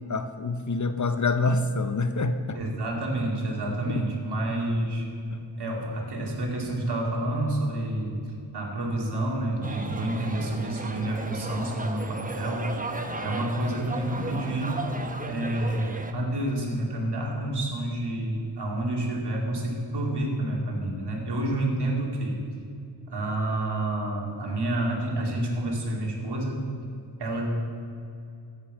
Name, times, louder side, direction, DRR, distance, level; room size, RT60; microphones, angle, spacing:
voice 1, 0.1-2.6 3.9-4.0 5.3-5.4, left 3 dB, 40° left, 10 dB, 0.7 m, -26 dB
voice 2, 2.5-5.0 5.6-8.3 8.5-12.7 13.2-14.9 15.2-22.4 23.1-26.7 27.2-27.5, right 1 dB, 60° right, -1 dB, 2.6 m, -29 dB
sound 1, 9.6-16.1, right 2 dB, 20° right, 0.9 m, -35 dB
14.5 x 5.4 x 7.4 m, 2.5 s
wide cardioid pair, 85°, 46 cm